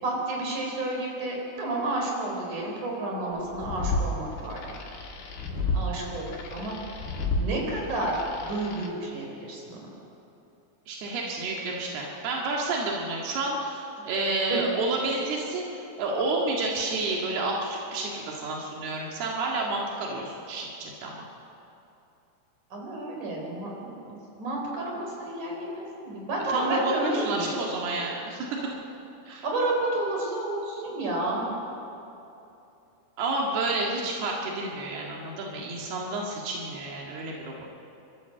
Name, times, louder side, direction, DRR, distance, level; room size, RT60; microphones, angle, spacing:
voice 1, 0.0-4.6 5.7-6.3 6.5-6.7 7.3-9.9 14.5-14.6 22.7-27.5 29.4-31.6, right 2 dB, 55° right, -1 dB, 5.5 m, -30 dB
sound 1, 3.4-8.9, left 2 dB, 80° left, 4.1 m, -32 dB
voice 2, 10.9-21.3 26.5-28.6 29.3-29.5 33.2-37.7, right 2 dB, 90° right, -2 dB, 3.9 m, -30 dB
29.5 x 13.0 x 7.7 m, 2.8 s
omnidirectional pair, 4.4 m